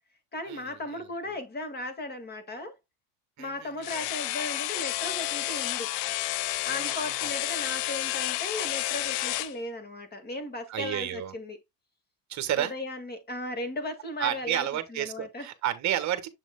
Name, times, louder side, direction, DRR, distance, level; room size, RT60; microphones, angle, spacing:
voice 1, 0.3-2.7 3.4-5.9 6.6-11.6 12.6-15.5, left 2 dB, 20° left, 2.0 m, -36 dB
voice 2, 3.4-3.7 6.7-7.2 10.7-11.3 12.3-12.7 14.2-16.3, right 12 dB, 35° right, 1.4 m, -31 dB
sound 1, 3.8-9.5, left 16 dB, 80° left, 0.7 m, -31 dB
7.7 x 6.2 x 2.3 m
supercardioid pair, 120°, 47 cm